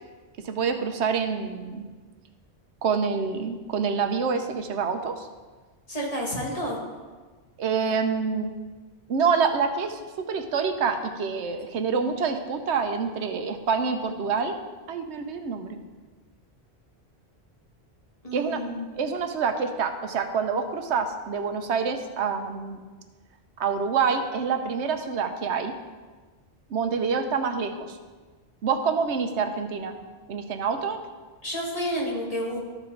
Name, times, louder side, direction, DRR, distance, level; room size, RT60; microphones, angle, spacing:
voice 1, 0.4-1.8 2.8-5.3 7.6-8.5 9.1-14.6 14.9-15.8 18.3-18.6 19.0-22.8 23.6-25.7 26.7-28.0 28.6-30.0 30.3-31.0, right 5 dB, 85° right, 7 dB, 1.0 m, -27 dB
voice 2, 5.9-6.8 18.2-18.9 31.4-32.6, equal, 35° left, -3 dB, 1.7 m, -30 dB
13.0 x 5.0 x 3.8 m, 1.4 s
omnidirectional pair, 1.1 m